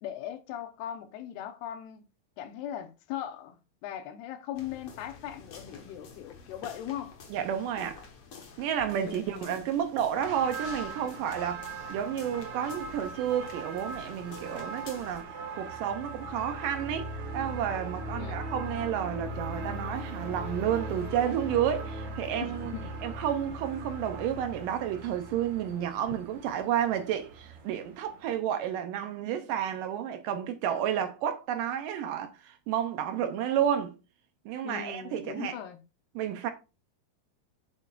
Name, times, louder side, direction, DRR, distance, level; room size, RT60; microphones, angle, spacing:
voice 1, 0.0-2.1 2.4-7.2 9.0-9.7 18.2-18.5 22.4-23.0 34.6-35.8, left 10 dB, 80° left, 2.8 m, -39 dB
sound 1, 4.5-15.2, left 5 dB, 65° left, 1.4 m, -49 dB
voice 2, 7.3-8.0 8.6-17.1 17.3-22.7 23.0-33.9 34.5-35.6 36.2-36.5, right 9 dB, 85° right, 1.9 m, -31 dB
sound 2, 10.2-28.4, right 4 dB, 65° right, 1.4 m, -43 dB
sound 3, 15.5-26.3, equal, 50° right, 2.0 m, -39 dB
8.5 x 8.1 x 2.5 m
omnidirectional pair, 4.8 m